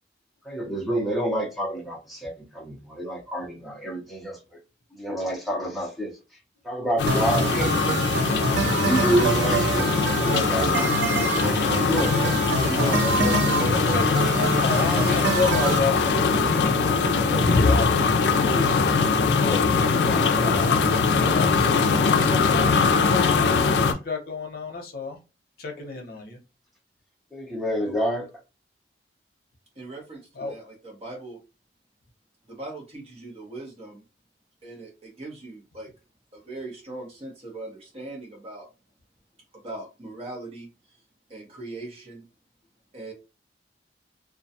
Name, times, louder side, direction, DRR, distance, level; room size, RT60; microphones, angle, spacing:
voice 1, 0.4-4.6 4.9-6.1 6.6-7.8 8.6-11.2 11.6-13.3 20.0-20.6 20.8-21.1 27.3-28.3, equal, ahead, 0.7 m, -29 dB
sound 1, 7.0-23.9, left 4 dB, 75° left, 0.4 m, -22 dB
sound 2, 7.1-15.8, right 4 dB, 75° right, 0.4 m, -27 dB
voice 2, 13.1-18.8 19.4-19.9 20.4-20.9 21.2-25.2 25.6-26.4 30.4-30.5, left 4 dB, 60° left, 0.8 m, -31 dB
voice 3, 29.8-31.4 32.4-34.0 34.6-35.9 36.3-38.7 39.5-41.0 41.3-42.2 42.9-43.1, right 2 dB, 35° right, 0.9 m, -40 dB
2.3 x 2.2 x 2.7 m
head